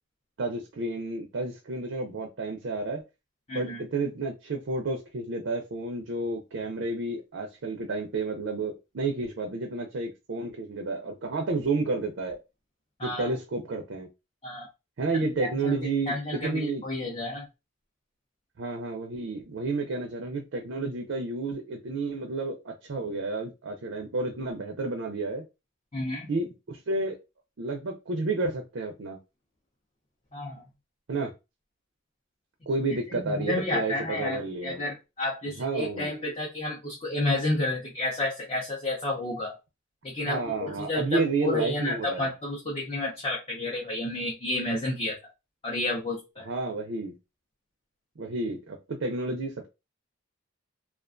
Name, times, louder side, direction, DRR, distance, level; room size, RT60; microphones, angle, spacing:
voice 1, 0.4-3.0 3.5-12.4 13.0-14.1 15.0-16.1 16.4-16.8 18.6-25.4 26.3-27.2 27.6-29.2 31.1-31.3 32.7-34.8 35.6-36.1 40.3-42.3 46.5-47.1 48.2-49.7, right 3 dB, 60° right, 2 dB, 0.5 m, -31 dB
voice 2, 3.5-3.8 13.0-13.3 14.4-14.7 15.6-15.8 16.1-17.5 25.9-26.3 30.3-30.6 33.1-39.5 40.0-45.2 45.6-46.5, left 2 dB, 25° left, -4 dB, 0.5 m, -31 dB
2.3 x 2.2 x 2.4 m, 0.26 s
head